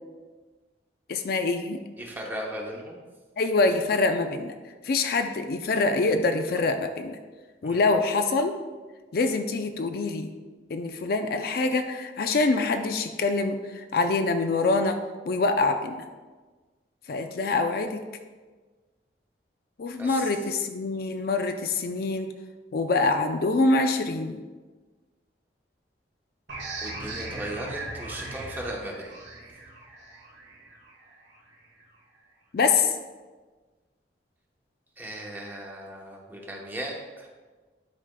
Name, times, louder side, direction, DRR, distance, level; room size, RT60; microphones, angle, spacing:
voice 1, 1.1-1.8 3.4-4.5 4.8-7.2 7.6-8.6 9.1-10.3 10.7-15.0 15.3-16.0 17.1-18.0 19.8-22.3 22.7-24.4 32.5-33.0, left 3 dB, 55° left, 7 dB, 0.4 m, -25 dB
voice 2, 2.0-3.0 7.6-7.8 20.0-20.3 26.8-29.1 35.0-37.3, right 1 dB, 10° right, -1 dB, 0.9 m, -37 dB
sound 1, 26.5-31.8, right 2 dB, 80° right, 1.4 m, -39 dB
10.5 x 5.0 x 2.2 m, 1.3 s
head